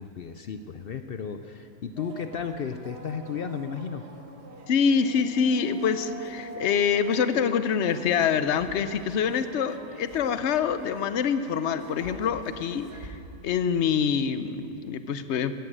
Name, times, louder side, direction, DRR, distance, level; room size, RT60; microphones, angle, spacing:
voice 1, 0.0-4.1, left 6 dB, 75° left, 8 dB, 0.5 m, -34 dB
sound 1, 2.0-13.1, right 2 dB, 45° right, 1.3 m, -46 dB
voice 2, 4.7-13.2 13.4-15.6, left 7 dB, 55° left, 11 dB, 0.8 m, -25 dB
14.0 x 10.5 x 8.7 m, 2.7 s
omnidirectional pair, 1.6 m